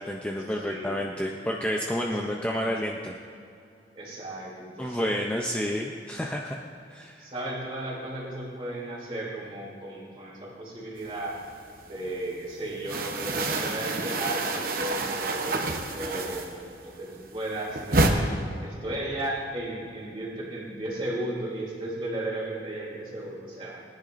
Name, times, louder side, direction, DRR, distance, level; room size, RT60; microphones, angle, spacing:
voice 1, 0.0-3.2 4.8-6.6 6.9-7.3, equal, 5° left, -1 dB, 0.5 m, -30 dB
voice 2, 0.6-1.1 2.0-2.3 3.9-5.2 7.2-11.4 11.8-15.4 15.9-23.8, right 1 dB, 30° right, -4 dB, 2.9 m, -35 dB
sound 1, 11.1-12.1 12.4-16.8 17.1-18.1, right 2 dB, 55° right, 0.9 m, -28 dB
19.0 x 10.5 x 2.6 m, 2.4 s
head